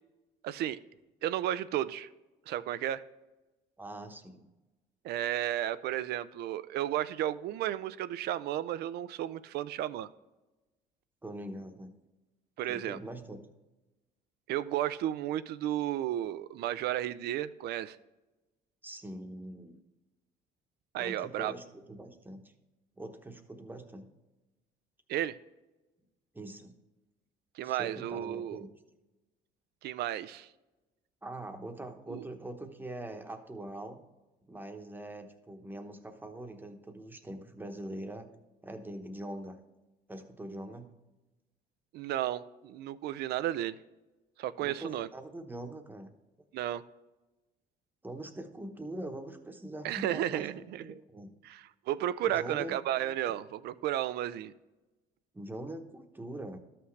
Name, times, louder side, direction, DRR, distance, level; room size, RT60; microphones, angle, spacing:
voice 1, 0.4-0.8 1.2-2.1 2.5-3.0 5.0-10.1 12.6-13.0 14.5-18.0 20.9-21.5 25.1-25.4 27.6-28.6 29.8-30.5 32.1-32.2 41.9-43.8 44.4-45.1 46.5-46.8 49.8-51.0 51.4-54.5, right 12 dB, 70° right, 16 dB, 0.4 m, -33 dB
voice 2, 3.8-4.5 11.2-11.9 12.7-13.4 18.8-19.8 21.0-22.5 23.0-24.1 26.3-26.7 27.6-28.7 31.2-34.0 34.5-38.3 38.6-39.6 40.1-40.9 44.6-46.1 48.0-51.3 52.2-52.7 55.3-56.6, right 1 dB, 10° right, 6 dB, 1.0 m, -43 dB
12.5 x 5.9 x 3.2 m, 1.1 s
cardioid pair, 110°, 17 cm